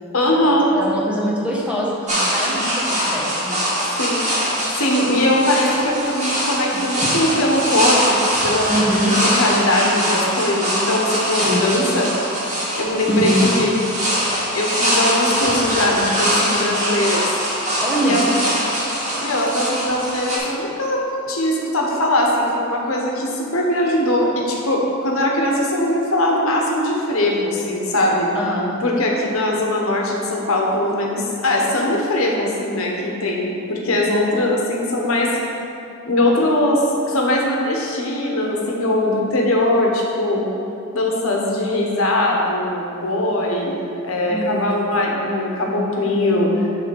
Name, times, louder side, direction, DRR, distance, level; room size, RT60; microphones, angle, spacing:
voice 1, 0.1-0.7 4.0-4.3 4.7-8.2 8.4-8.7 9.0-12.3 12.8-13.7 14.5-17.2 18.0-18.3 19.2-21.0 21.3-28.3 28.8-35.3 36.1-40.5 40.9-43.8 44.0-46.7, left 1 dB, 80° left, -1 dB, 1.1 m, -20 dB
voice 2, 0.7-3.6 6.7-6.8 8.7-9.1 11.4-11.6 13.1-13.6 17.8-18.4 28.3-28.7 44.3-44.7, equal, 5° right, -5 dB, 1.1 m, -23 dB
sound 1, 2.1-20.4, equal, 35° right, 1.8 m, -22 dB
10.0 x 3.4 x 5.3 m, 2.7 s
head